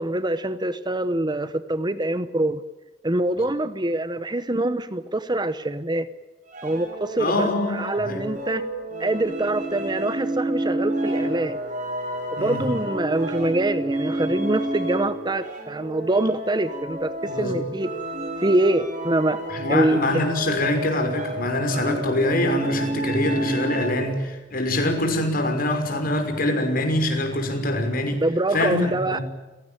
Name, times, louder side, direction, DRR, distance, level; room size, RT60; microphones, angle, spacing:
voice 1, 0.0-2.6 3.0-6.1 6.6-8.7 9.0-11.6 12.4-17.9 18.4-19.4 19.7-20.0 28.2-29.2, right 1 dB, 20° right, 13 dB, 0.9 m, -24 dB
sound 1, 6.5-24.2, right 1 dB, 40° right, 7.7 m, -30 dB
voice 2, 7.2-8.2 12.4-12.6 17.3-17.7 19.5-28.2 28.5-29.2, left 1 dB, 50° left, 5 dB, 5.9 m, -24 dB
30.0 x 17.5 x 9.1 m, 1.2 s
head